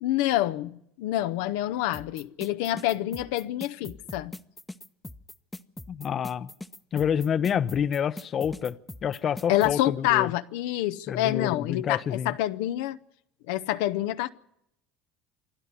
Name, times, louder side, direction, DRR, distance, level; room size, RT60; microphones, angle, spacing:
voice 1, 0.0-4.3 9.5-13.0 13.5-14.3, left 14 dB, 80° left, 0.7 m, -27 dB
sound 1, 1.9-9.7, left 2 dB, 10° left, 0.9 m, -41 dB
voice 2, 5.9-6.5 6.9-8.8 9.0-10.3 11.1-12.4, left 8 dB, 40° left, 0.7 m, -28 dB
27.5 x 11.5 x 9.6 m
supercardioid pair, 100°, 0 cm